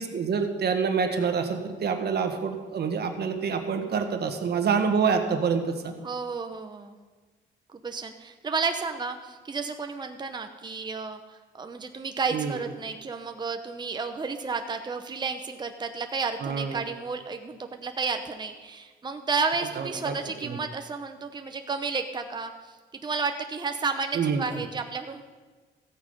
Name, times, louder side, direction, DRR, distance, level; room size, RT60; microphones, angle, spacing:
voice 1, 0.0-5.9 12.3-12.6 16.4-16.8 19.8-20.2 20.4-20.6 24.1-24.7, right 6 dB, 55° right, 6 dB, 1.5 m, -27 dB
voice 2, 6.0-6.9 7.7-22.8 23.0-25.2, right 4 dB, 20° right, 6 dB, 0.8 m, -32 dB
14.0 x 8.7 x 5.3 m, 1.3 s
cardioid pair, 90°, 20 cm